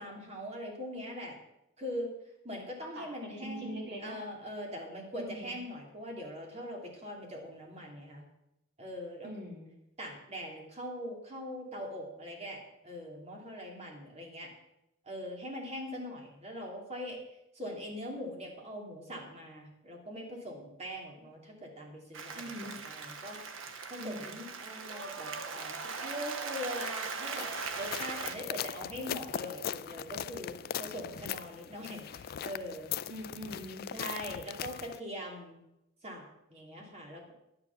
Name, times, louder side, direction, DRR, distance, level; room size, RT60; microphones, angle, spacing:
voice 1, 0.0-1.4 1.8-2.1 2.4-8.2 8.8-9.3 10.0-12.6 12.8-14.5 15.0-17.2 17.5-23.4 23.9-27.5 27.8-32.9 33.9-35.6 36.0-36.2 36.5-37.3, equal, 35° right, 0 dB, 2.9 m, -42 dB
voice 2, 2.9-4.2 5.1-5.6 9.2-9.7 22.3-22.8 24.0-24.4 33.1-33.9, equal, 60° right, -1 dB, 2.7 m, -42 dB
Applause, 22.1-28.3, right 4 dB, 75° right, 1.2 m, -39 dB
sound 1, 27.4-35.0, left 9 dB, 50° left, 0.3 m, -40 dB
11.0 x 9.7 x 5.9 m, 0.88 s
head